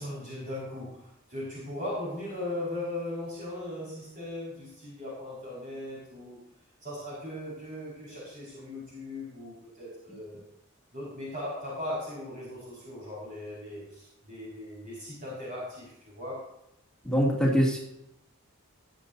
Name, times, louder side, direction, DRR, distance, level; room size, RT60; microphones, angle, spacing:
voice 1, 0.0-6.4 6.8-10.4 10.9-16.5, left 1 dB, 40° right, -7 dB, 5.3 m, -38 dB
voice 2, 17.0-17.8, equal, 5° left, -3 dB, 2.7 m, -23 dB
21.5 x 7.7 x 2.7 m, 0.82 s
head